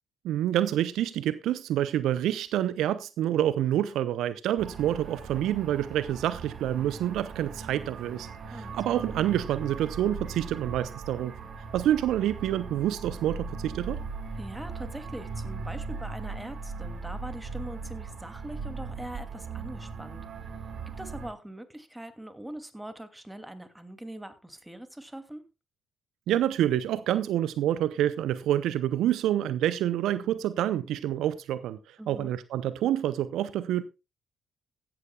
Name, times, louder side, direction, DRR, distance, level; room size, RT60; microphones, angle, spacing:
voice 1, 0.2-11.3 11.7-14.0 26.3-33.8, right 12 dB, 70° right, 0.6 m, -27 dB
sound 1, 4.6-21.3, right 4 dB, 55° right, 2.1 m, -39 dB
voice 2, 8.5-9.0 14.4-20.2 20.9-25.4 32.0-32.3, right 1 dB, 10° right, 2.5 m, -42 dB
16.0 x 12.0 x 2.3 m
hypercardioid pair, 45°, 0 cm